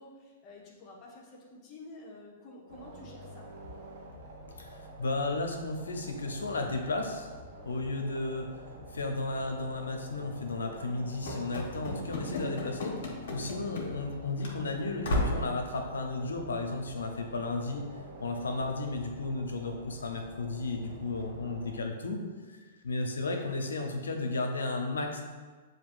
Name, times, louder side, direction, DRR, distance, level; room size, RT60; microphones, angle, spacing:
voice 1, 0.0-3.5 18.4-18.5, left 2 dB, 35° left, -3 dB, 1.1 m, -50 dB
sound 1, 2.7-21.8, right 1 dB, 65° right, 1.0 m, -48 dB
voice 2, 4.6-7.3 7.6-8.6 8.9-17.9 18.2-22.2 22.5-22.6 22.8-25.2, left 2 dB, 90° left, 3 dB, 0.6 m, -34 dB
Run / Slam, 11.3-14.1 14.4-14.6 15.0-15.5, left 1 dB, 65° left, 0.9 m, -34 dB
7.2 x 2.6 x 2.5 m, 1.4 s
hypercardioid pair, 120°, 0 cm